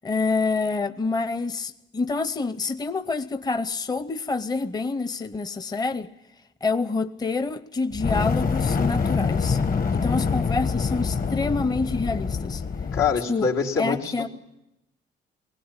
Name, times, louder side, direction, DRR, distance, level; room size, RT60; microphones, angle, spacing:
voice 1, 0.0-6.1 6.6-9.6 9.9-12.6 13.3-13.5 13.8-14.3, left 3 dB, 20° left, 0.7 m, -27 dB
Fire, 7.9-13.2, left 5 dB, 45° left, 1.3 m, -25 dB
voice 2, 12.9-14.3, left 6 dB, 85° left, 3.3 m, -25 dB
20.5 x 18.5 x 8.9 m
cardioid pair, 90°, 20 cm